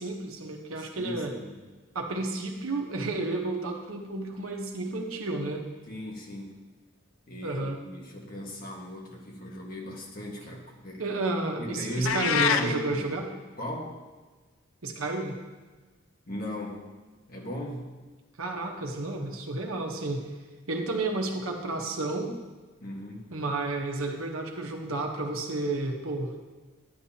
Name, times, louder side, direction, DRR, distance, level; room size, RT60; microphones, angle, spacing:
voice 1, 0.0-1.3 1.9-5.6 7.4-7.8 11.0-13.3 14.8-15.4 18.4-20.2 20.7-22.3 23.3-26.3, right 2 dB, 85° right, 2 dB, 1.1 m, -31 dB
voice 2, 0.8-1.6 5.9-6.6 7.3-11.0 11.6-13.0 13.6-14.0 16.3-16.8 17.3-17.9 22.8-23.3, equal, 45° left, -1 dB, 1.5 m, -37 dB
sound 1, 12.0-12.7, left 7 dB, 75° left, 0.5 m, -24 dB
10.5 x 8.8 x 2.9 m, 1.3 s
head